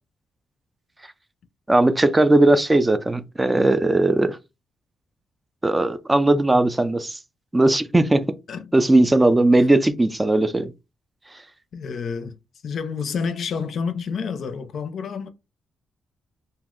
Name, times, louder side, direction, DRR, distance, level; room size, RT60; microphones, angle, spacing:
voice 1, 1.7-4.4 5.6-7.2 7.5-8.3 8.7-10.7, right 2 dB, 20° right, 0.3 m, -18 dB
voice 2, 11.7-12.4 12.6-15.3, left 6 dB, 65° left, 0.4 m, -29 dB
2.6 x 2.0 x 3.6 m
cardioid pair, 75°, 0 cm